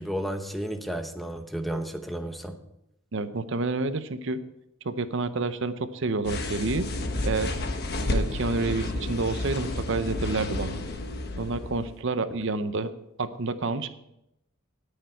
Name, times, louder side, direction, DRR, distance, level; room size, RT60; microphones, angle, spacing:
voice 1, 0.0-2.6, right 1 dB, ahead, 6 dB, 0.9 m, -32 dB
voice 2, 3.1-4.4 4.8-6.9 7.2-7.5 8.1-10.8 11.4-12.9 13.2-13.9, right 3 dB, 60° right, 11 dB, 0.7 m, -29 dB
sound 1, 6.2-12.0, left 2 dB, 50° left, 1.2 m, -31 dB
18.5 x 6.6 x 4.5 m, 0.84 s
head